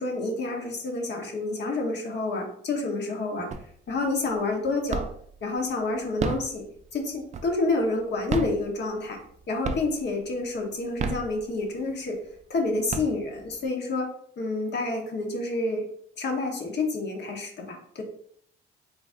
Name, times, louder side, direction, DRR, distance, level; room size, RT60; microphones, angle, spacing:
voice 1, 0.0-3.5 3.9-5.0 5.4-6.6 6.9-9.2 9.5-12.2 12.5-14.1 14.4-15.8 16.2-18.0, left 3 dB, 60° left, 2 dB, 1.1 m, -28 dB
sound 1, 3.5-4.0 4.4-5.4 6.0-7.8 8.2-9.3 9.6-10.2 10.8-11.9 12.4-12.5 12.7-13.6, right 5 dB, 35° right, 0.4 m, -32 dB
3.9 x 2.0 x 3.6 m, 0.63 s
cardioid pair, 90°, 20 cm